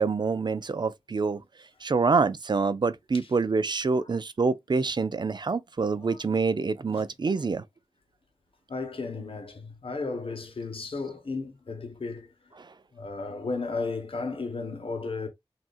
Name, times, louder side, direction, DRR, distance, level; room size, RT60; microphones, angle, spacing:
voice 1, 0.0-1.4 1.8-7.6 12.6-12.7, right 4 dB, 50° right, 0.4 m, -26 dB
voice 2, 8.7-12.3 12.9-15.3, left 3 dB, 70° left, 1.2 m, -34 dB
6.1 x 2.6 x 2.3 m
wide cardioid pair, 80°, 10 cm